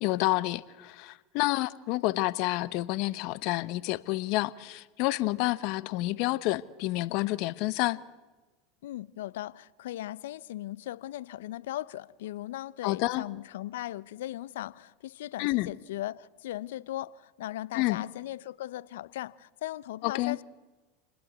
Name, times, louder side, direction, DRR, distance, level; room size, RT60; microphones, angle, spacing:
voice 1, 0.0-8.0 12.8-13.2 15.4-15.7 17.7-18.0 20.0-20.4, left 19 dB, 60° left, 1.0 m, -29 dB
voice 2, 8.8-20.4, left 14 dB, 75° left, 0.7 m, -38 dB
29.0 x 20.5 x 8.2 m
hypercardioid pair, 90°, 0 cm